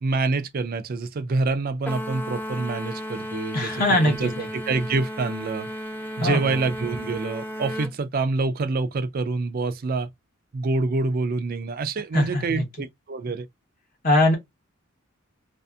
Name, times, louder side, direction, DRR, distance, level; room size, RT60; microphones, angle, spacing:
voice 1, 0.0-5.7 6.2-10.1 10.5-13.5, right 3 dB, 45° right, 0.4 m, -26 dB
sound 1, 1.9-7.9, equal, 10° left, 0.6 m, -34 dB
voice 2, 3.5-4.5 6.2-6.5 12.1-12.6 14.0-14.4, left 1 dB, 45° left, 0.8 m, -21 dB
2.6 x 2.5 x 2.3 m
head